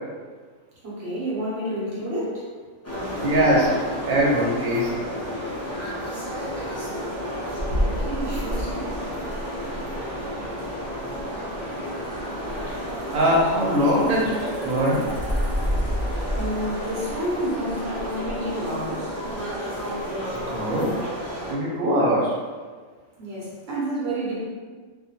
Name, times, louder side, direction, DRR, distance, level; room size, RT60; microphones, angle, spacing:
voice 1, 0.8-2.5 7.7-9.0 16.3-19.2 23.2-24.4, right 1 dB, 55° right, -7 dB, 1.0 m, -30 dB
sound 1, 2.8-21.5, equal, 20° left, 0.5 m, -30 dB
voice 2, 3.2-3.7 4.1-4.9 13.1-14.4 14.6-15.1 20.5-21.1 21.5-22.4, equal, 90° right, -4 dB, 1.1 m, -21 dB
2.4 x 2.2 x 2.7 m, 1.5 s
omnidirectional pair, 1.4 m